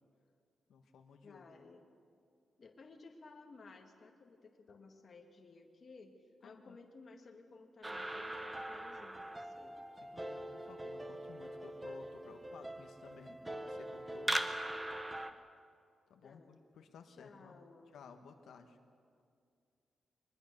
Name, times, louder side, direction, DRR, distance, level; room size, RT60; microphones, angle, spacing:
voice 1, 0.7-1.4 6.4-6.8 10.1-14.4 16.1-17.6 17.9-18.8, left 6 dB, 80° left, 5 dB, 1.4 m, -56 dB
voice 2, 1.2-1.8 2.6-9.8 16.2-16.6 17.1-17.9, left 3 dB, 35° left, 3 dB, 1.8 m, -57 dB
sound 1, 7.8-15.3, right 1 dB, 10° right, 1.0 m, -41 dB
22.5 x 21.0 x 6.7 m, 2.3 s
wide cardioid pair, 180°, 0 cm